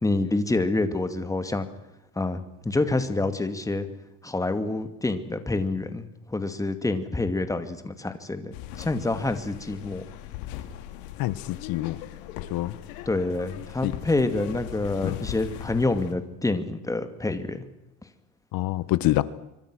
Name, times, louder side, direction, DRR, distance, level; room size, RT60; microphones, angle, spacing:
voice 1, 0.0-1.7 2.2-3.9 4.2-10.0 13.1-17.6, left 2 dB, 10° left, 9 dB, 2.3 m, -27 dB
sound 1, 8.5-16.1, left 12 dB, 85° left, 3.2 m, -39 dB
voice 2, 11.2-12.0 12.5-12.7 13.8-13.9 15.0-15.2 18.5-19.2, left 17 dB, 60° left, 16 dB, 1.4 m, -26 dB
26.5 x 25.0 x 6.3 m, 0.93 s
cardioid pair, 130°, 39 cm